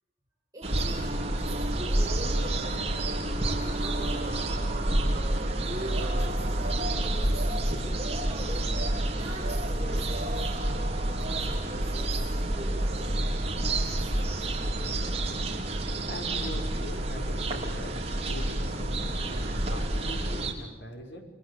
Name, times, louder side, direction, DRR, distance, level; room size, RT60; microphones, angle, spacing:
voice 1, 0.5-2.9 3.4-4.4 5.6-8.7 9.2-10.3 11.0-13.2 13.6-14.5, right 1 dB, 20° right, -4 dB, 6.0 m, -42 dB
sound 1, 0.6-20.5, right 1 dB, 35° right, 4.1 m, -29 dB
voice 2, 16.1-17.9 18.3-21.2, equal, 85° left, 4 dB, 5.7 m, -41 dB
28.5 x 23.5 x 8.7 m, 0.95 s
head